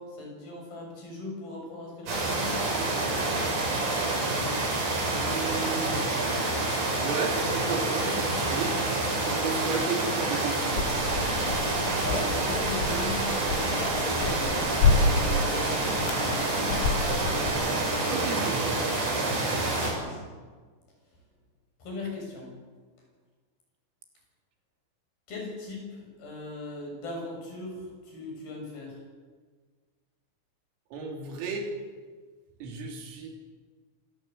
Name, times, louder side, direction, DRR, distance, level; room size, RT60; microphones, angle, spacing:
voice 1, 0.0-3.1 3.6-4.0 11.9-17.0 20.0-20.3 21.8-22.5 25.3-29.0, left 3 dB, 45° left, 0 dB, 8.7 m, -39 dB
sound 1, 2.1-19.9, right 2 dB, 45° right, 7.1 m, -28 dB
voice 2, 5.2-6.4 7.0-8.7 9.3-10.9 18.1-18.8 30.9-31.7 32.6-33.3, right 4 dB, 80° right, 2 dB, 5.7 m, -34 dB
sound 2, 10.7-17.5, left 3 dB, 80° left, 6.2 m, -29 dB
26.5 x 17.5 x 8.1 m, 1.5 s
omnidirectional pair, 5.9 m